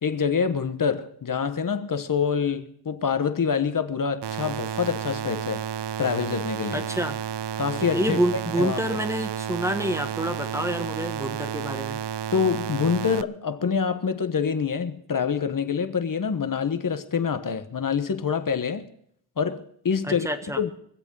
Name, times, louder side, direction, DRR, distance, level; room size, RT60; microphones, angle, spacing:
voice 1, 0.0-5.7 6.0-6.9 7.6-8.2 8.6-8.8 12.3-18.9 19.4-20.3 20.6-20.7, left 6 dB, 40° left, 1.2 m, -26 dB
sound 1, 4.2-13.2, right 9 dB, 60° right, 0.6 m, -31 dB
voice 2, 6.7-7.2 7.9-12.0 20.1-20.6, right 1 dB, 5° right, 1.4 m, -27 dB
23.0 x 8.1 x 5.4 m
cardioid pair, 85°, 47 cm